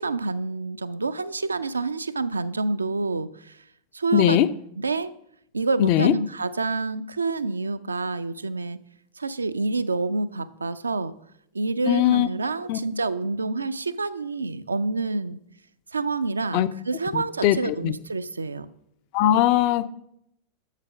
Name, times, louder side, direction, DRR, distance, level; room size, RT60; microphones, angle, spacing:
voice 1, 0.0-3.6 3.9-4.4 4.8-5.1 5.5-8.8 9.2-11.1 11.5-15.4 15.9-18.7, right 3 dB, 75° right, 13 dB, 0.4 m, -28 dB
voice 2, 4.1-4.5 5.8-6.1 11.9-12.3 12.7-12.8 16.5-16.7 17.1-17.9 19.1-19.9, left 12 dB, 45° left, 14 dB, 0.4 m, -20 dB
6.9 x 5.7 x 5.9 m, 0.75 s
figure-of-eight pair, 90°, 0 cm